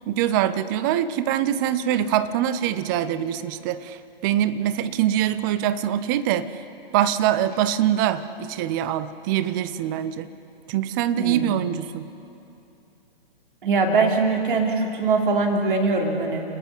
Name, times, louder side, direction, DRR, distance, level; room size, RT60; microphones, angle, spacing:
voice 1, 0.1-6.5 6.9-10.3 10.7-12.1, right 11 dB, 20° right, 14 dB, 0.5 m, -24 dB
voice 2, 11.2-11.5 13.6-16.4, right 3 dB, 60° right, 1 dB, 3.0 m, -22 dB
29.0 x 10.0 x 9.7 m, 2.7 s
figure-of-eight pair, 120°, 30 cm